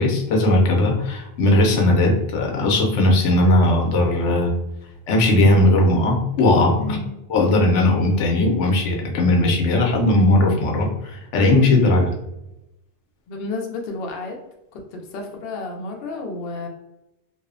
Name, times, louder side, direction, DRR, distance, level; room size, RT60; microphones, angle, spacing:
voice 1, 0.0-4.5 5.1-7.0 7.3-12.1, left 1 dB, 90° left, 1 dB, 0.9 m, -18 dB
voice 2, 6.8-7.1 13.3-14.4 14.7-16.7, left 3 dB, 65° left, 2 dB, 0.7 m, -31 dB
2.6 x 2.0 x 2.4 m, 0.90 s
omnidirectional pair, 1.2 m